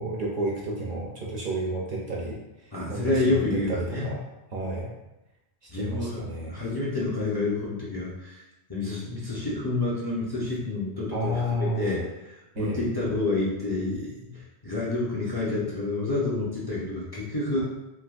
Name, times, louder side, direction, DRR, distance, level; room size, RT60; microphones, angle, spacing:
voice 1, 0.0-4.2 4.5-4.9 5.7-6.6 11.1-12.0 12.5-12.8, right 1 dB, 60° right, -2 dB, 0.6 m, -31 dB
voice 2, 2.7-4.1 5.7-6.2 6.5-8.4 8.7-17.6, left 2 dB, 30° left, -6 dB, 0.5 m, -29 dB
3.3 x 2.7 x 2.4 m, 0.99 s
omnidirectional pair, 1.1 m